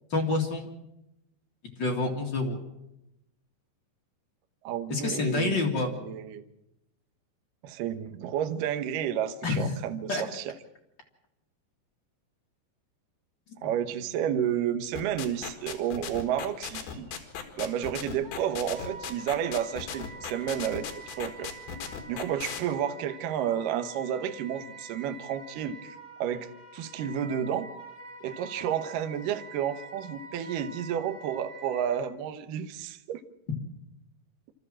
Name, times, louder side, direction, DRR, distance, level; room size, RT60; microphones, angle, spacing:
voice 1, 0.1-0.7 1.8-2.6 4.9-5.9 9.4-9.7 10.1-10.2, left 3 dB, 40° left, 1 dB, 1.6 m, -27 dB
voice 2, 4.6-6.4 7.6-10.5 13.6-17.2 17.6-20.9 21.2-21.5 22.1-27.7 28.2-33.2, right 9 dB, 70° right, 9 dB, 2.1 m, -31 dB
sound 1, 15.0-22.6, left 8 dB, 70° left, 3.9 m, -37 dB
Wind instrument woodwind instrument, 18.2-32.0, right 3 dB, 50° right, 5.5 m, -46 dB
27.0 x 13.5 x 7.5 m, 0.88 s
omnidirectional pair, 5.2 m